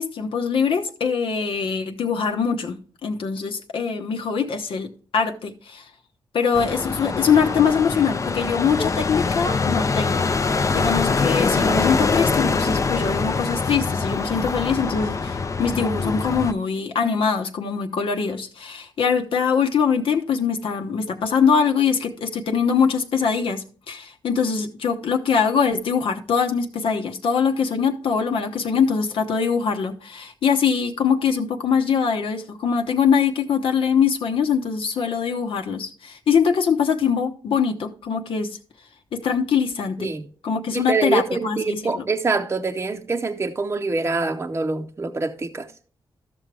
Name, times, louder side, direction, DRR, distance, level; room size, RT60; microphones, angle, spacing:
voice 1, 0.0-2.8 3.0-5.8 6.3-10.3 10.7-38.6 39.1-40.1 40.4-42.1, left 6 dB, 80° left, 1.0 m, -23 dB
sound 1, 6.5-16.5, left 4 dB, 35° left, 0.5 m, -23 dB
voice 2, 40.7-45.7, right 3 dB, 30° right, 0.6 m, -25 dB
13.0 x 6.2 x 3.4 m
cardioid pair, 75°, 9 cm